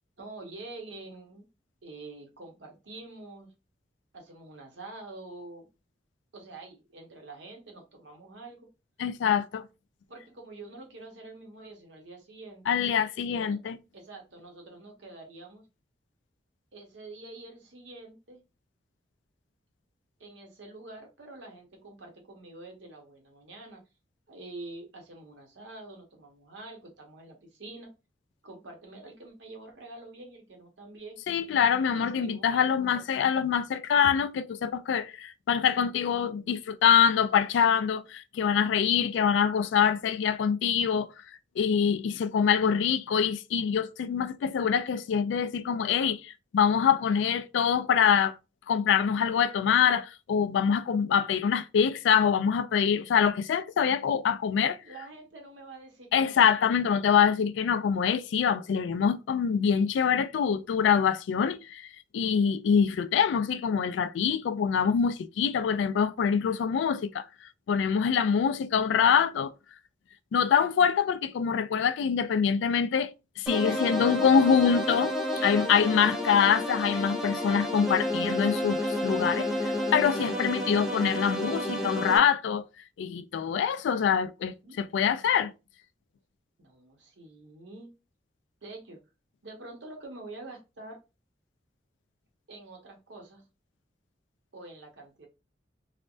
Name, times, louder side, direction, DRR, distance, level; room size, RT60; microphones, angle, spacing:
voice 1, 0.2-1.5 1.8-3.5 4.1-5.7 6.3-8.7 10.1-12.7 13.3-13.6 13.9-15.6 16.7-18.4 20.2-23.8 24.3-27.9 28.4-31.2 31.9-33.0 54.8-56.4 73.7-75.0 75.2-75.9 76.3-76.5 84.6-84.8 86.6-87.9 88.6-89.0 89.4-91.0 92.5-93.4 94.5-95.3, right 2 dB, 85° right, 1.0 m, -46 dB
voice 2, 9.0-9.7 12.7-13.8 31.3-41.1 41.6-48.4 48.7-54.8 56.1-61.9 62.1-67.3 67.7-69.5 70.3-75.1 75.4-82.6 83.0-85.5, left 7 dB, 85° left, 0.3 m, -25 dB
sound 1, 73.5-82.2, left 1 dB, ahead, 0.5 m, -30 dB
3.2 x 2.1 x 2.5 m
head